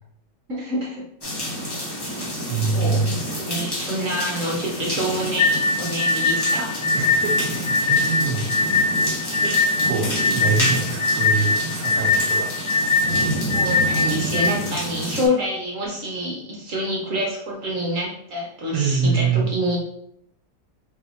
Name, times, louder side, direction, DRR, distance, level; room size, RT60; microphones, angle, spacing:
voice 1, 0.5-1.0 2.7-3.0 3.4-6.7 13.0-13.2 13.5-19.8, equal, 55° right, -3 dB, 1.2 m, -27 dB
sound 1, 1.2-15.3, equal, 20° left, 0.8 m, -29 dB
voice 2, 2.5-3.1 6.9-8.9 9.3-9.5 9.8-12.5 18.7-19.5, right 4 dB, 70° right, 1 dB, 1.4 m, -25 dB
sound 2, 5.4-14.5, left 3 dB, 90° left, 1.3 m, -21 dB
3.8 x 2.8 x 4.0 m, 0.74 s
omnidirectional pair, 1.8 m